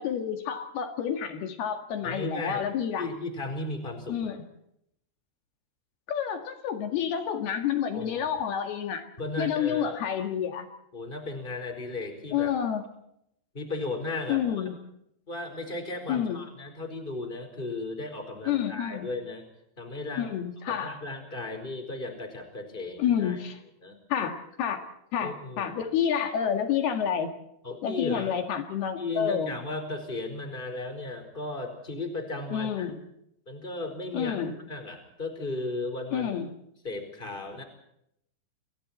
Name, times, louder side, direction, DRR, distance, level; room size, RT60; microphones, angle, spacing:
voice 1, 0.0-3.1 4.1-4.4 6.1-9.1 9.4-10.7 12.3-12.9 14.3-14.8 16.1-16.4 18.5-19.1 20.2-20.9 23.0-23.6 24.1-24.8 25.1-27.3 27.8-29.5 32.5-33.0 34.1-34.6 36.1-36.5, left 8 dB, 75° left, 6 dB, 3.9 m, -29 dB
voice 2, 2.0-2.7 3.0-4.4 7.9-8.3 9.2-10.0 10.9-12.5 13.5-14.6 15.3-19.4 19.8-20.3 20.7-23.4 23.8-24.0 25.2-25.7 27.6-28.3 29.0-33.0 33.5-36.3 36.8-37.6, left 2 dB, 10° left, 6 dB, 4.5 m, -35 dB
29.5 x 24.0 x 4.4 m, 0.76 s
omnidirectional pair, 4.5 m